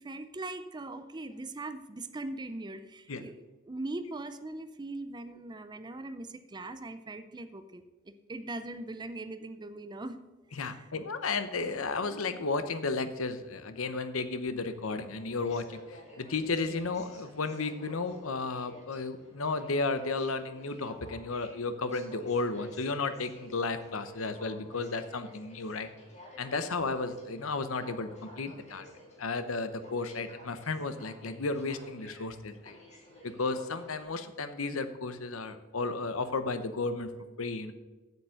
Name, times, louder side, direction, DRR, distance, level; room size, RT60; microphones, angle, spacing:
voice 1, 0.0-10.2 10.5-10.9, right 2 dB, 20° right, 10 dB, 0.5 m, -41 dB
voice 2, 10.5-25.9 26.4-28.1 28.4-28.8 29.2-32.8 33.2-37.1 37.4-37.7, left 3 dB, 75° left, 10 dB, 0.9 m, -33 dB
Aircraft, 14.6-34.0, equal, 35° left, 2.6 m, -53 dB
8.1 x 7.1 x 7.8 m, 1.2 s
head